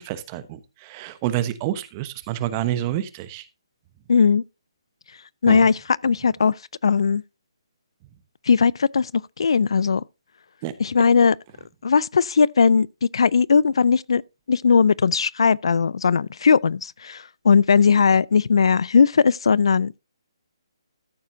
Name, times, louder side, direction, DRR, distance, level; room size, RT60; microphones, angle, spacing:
voice 1, 0.0-3.5 5.5-5.7 10.6-10.7, right 12 dB, 25° right, 1.0 m, -28 dB
voice 2, 4.1-4.4 5.4-5.7 6.0-6.5 6.8-7.2 8.5-9.1 9.4-10.0 10.8-11.3 11.8-12.9 13.1-14.2 14.5-20.0, left 5 dB, 70° left, 0.4 m, -18 dB
14.0 x 7.3 x 2.7 m
hypercardioid pair, 155°, 3 cm